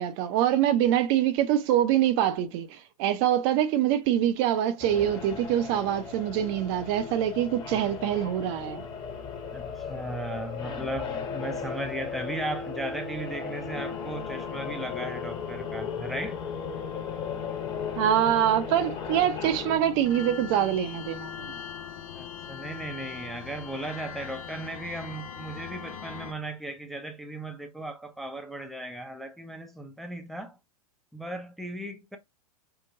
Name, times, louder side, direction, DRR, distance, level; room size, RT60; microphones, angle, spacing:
voice 1, 0.0-8.8 18.0-21.6, right 11 dB, 45° right, 0.6 m, -25 dB
sound 1, 4.8-19.8, left 5 dB, 25° left, 1.1 m, -36 dB
voice 2, 9.5-16.4 22.1-30.6 31.1-32.2, right 1 dB, ahead, 0.5 m, -36 dB
sound 2, 13.7-26.3, left 9 dB, 70° left, 0.7 m, -40 dB
4.6 x 2.1 x 2.5 m
hypercardioid pair, 115°, 19 cm